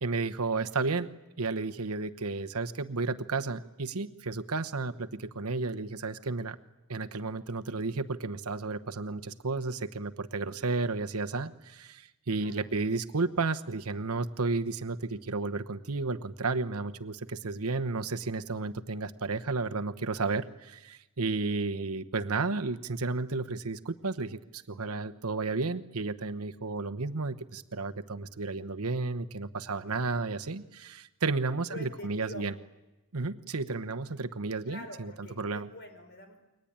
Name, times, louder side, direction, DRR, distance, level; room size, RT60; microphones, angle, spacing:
voice 1, 0.0-1.1 1.4-6.6 6.9-32.5 33.1-35.1 35.4-35.7, right 3 dB, 85° right, 8 dB, 1.0 m, -32 dB
voice 2, 29.7-30.1 31.7-32.5 34.7-36.4, left 1 dB, 50° left, 6 dB, 4.8 m, -46 dB
29.5 x 22.5 x 8.8 m, 1.0 s
head